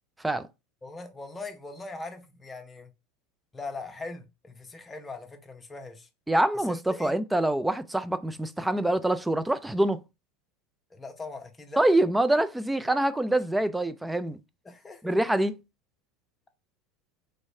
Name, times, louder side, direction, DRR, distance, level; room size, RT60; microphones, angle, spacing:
voice 1, 0.8-2.9 3.5-6.1 6.5-7.1 10.9-11.8 14.6-15.1, left 3 dB, 20° left, 0.8 m, -41 dB
voice 2, 6.3-10.0 11.8-14.4 15.0-15.6, right 1 dB, 5° right, 0.4 m, -25 dB
3.1 x 3.0 x 2.7 m
hypercardioid pair, 80°, 0 cm